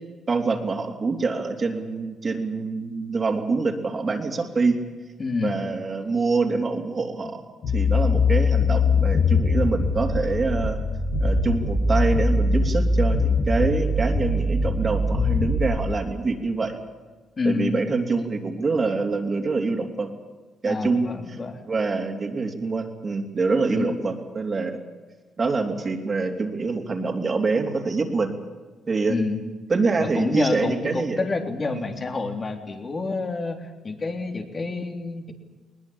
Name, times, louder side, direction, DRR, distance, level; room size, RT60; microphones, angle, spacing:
voice 1, 0.3-4.8 5.4-7.4 7.7-10.8 11.2-16.8 17.4-20.1 20.6-21.1 21.7-24.8 25.4-28.3 28.9-29.1 29.7-31.2 31.7-31.8, right 4 dB, 35° right, 3 dB, 3.4 m, -25 dB
voice 2, 5.2-5.6 17.4-17.8 20.6-21.6 23.7-24.0 29.1-29.4 30.0-35.3, left 3 dB, 35° left, 5 dB, 3.5 m, -28 dB
sound 1, 7.6-15.6, left 3 dB, 80° left, 7.9 m, -22 dB
21.0 x 20.0 x 8.9 m, 1.3 s
cardioid pair, 90°, 0 cm